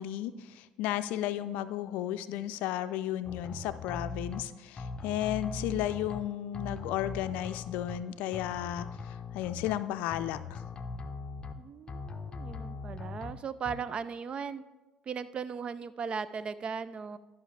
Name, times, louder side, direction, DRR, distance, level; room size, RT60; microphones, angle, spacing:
voice 1, 0.0-10.6, left 12 dB, 75° left, 12 dB, 0.4 m, -34 dB
sound 1, 3.2-4.4 4.8-6.2 6.5-8.0 8.3-9.8 10.1-11.5 11.9-13.3 13.6-13.8, left 4 dB, 35° left, 0.7 m, -40 dB
voice 2, 11.6-14.6 15.1-17.2, right 6 dB, 40° right, 15 dB, 0.4 m, -37 dB
12.0 x 5.6 x 3.3 m, 1.1 s
supercardioid pair, 75°, 3 cm